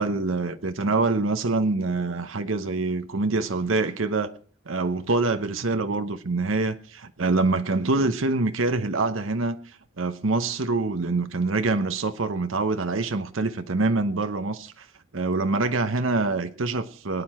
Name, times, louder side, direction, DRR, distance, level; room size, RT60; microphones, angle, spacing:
voice 1, 0.0-4.3 4.7-9.6 10.0-14.9 15.1-17.2, right 3 dB, 85° right, 0.9 m, -25 dB
23.5 x 9.7 x 4.3 m
head